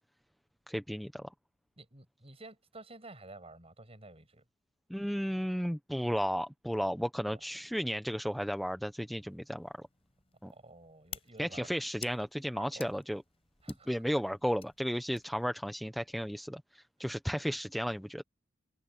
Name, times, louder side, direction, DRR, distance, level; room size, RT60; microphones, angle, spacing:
voice 1, 0.7-1.3 4.9-9.9 10.4-10.5 11.4-13.2 13.9-18.2, equal, ahead, 0.7 m, -34 dB
voice 2, 1.8-4.4 7.3-7.5 10.5-11.7 12.6-13.0 13.6-13.9, right 2 dB, 30° right, 7.5 m, -51 dB
sound 1, 9.2-15.5, left 7 dB, 30° left, 5.7 m, -52 dB
head